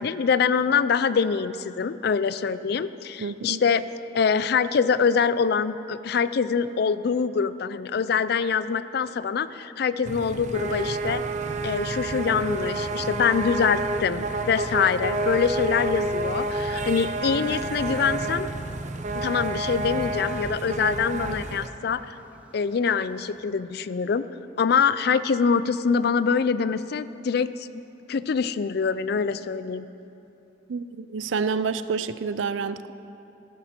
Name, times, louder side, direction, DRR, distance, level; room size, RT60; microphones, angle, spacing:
voice 1, 0.0-3.8 4.1-11.2 11.6-18.5 19.1-22.2 22.5-24.2 24.6-27.7 28.1-29.9, left 6 dB, 55° left, 15 dB, 0.4 m, -24 dB
voice 2, 3.2-3.6 30.7-32.9, right 5 dB, 90° right, 13 dB, 0.5 m, -28 dB
sound 1, 10.0-21.7, right 2 dB, 40° right, 0.6 m, -29 dB
sound 2, 15.8-23.4, equal, 10° right, 0.9 m, -49 dB
15.0 x 12.0 x 4.4 m, 3.0 s
head